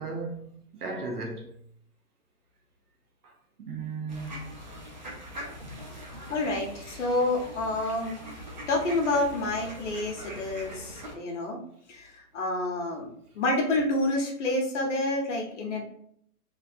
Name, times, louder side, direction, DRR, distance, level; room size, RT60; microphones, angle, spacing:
voice 1, 0.0-1.6 3.2-3.3 3.6-4.4, right 3 dB, 85° right, 0.9 m, -36 dB
sound 1, 4.1-11.2, equal, 35° right, 0.4 m, -42 dB
voice 2, 6.3-8.2 8.7-11.6 11.9-13.1 13.3-15.8, left 2 dB, 50° left, 0.9 m, -28 dB
3.2 x 2.6 x 2.5 m
hypercardioid pair, 165°, 45 cm